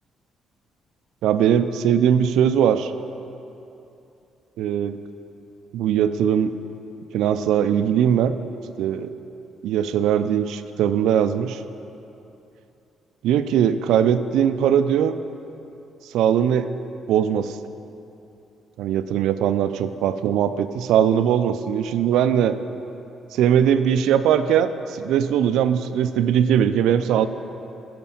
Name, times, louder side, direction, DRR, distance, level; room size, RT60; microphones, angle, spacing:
voice 1, 1.2-2.9 4.6-5.0 5.7-6.5 7.1-8.3 8.8-9.1 9.6-11.6 13.2-15.2 16.1-16.7 17.1-17.6 18.8-22.6 23.3-27.3, right 9 dB, 80° right, 11 dB, 0.4 m, -20 dB
12.5 x 5.2 x 7.1 m, 2.8 s
supercardioid pair, 70°, 0 cm